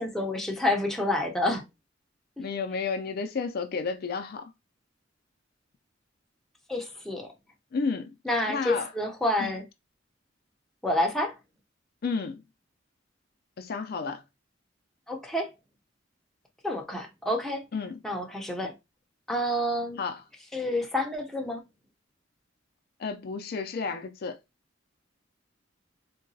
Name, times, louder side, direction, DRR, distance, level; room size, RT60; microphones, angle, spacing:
voice 1, 0.0-1.6 6.7-7.3 8.3-9.7 10.8-11.3 15.1-15.5 16.6-17.6 18.0-18.7 19.3-20.0 20.5-21.6, left 1 dB, ahead, 0.5 m, -28 dB
voice 2, 2.4-4.5 7.7-8.2 8.5-8.9 9.4-9.5 12.0-12.4 13.6-14.2 17.7-18.0 20.0-20.2 23.0-24.4, left 5 dB, 55° left, 0.4 m, -32 dB
3.8 x 2.2 x 2.6 m
head